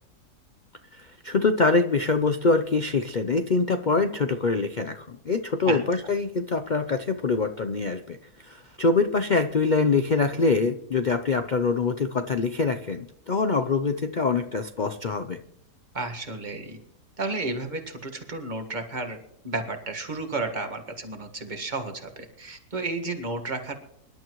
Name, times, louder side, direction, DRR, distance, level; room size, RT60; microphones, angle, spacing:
voice 1, 0.9-8.2 8.4-15.4, left 4 dB, 90° left, 8 dB, 0.4 m, -24 dB
voice 2, 15.9-16.8 17.2-19.2 19.4-23.8, right 3 dB, 25° right, 5 dB, 1.7 m, -32 dB
24.5 x 11.5 x 3.1 m, 0.75 s
omnidirectional pair, 1.8 m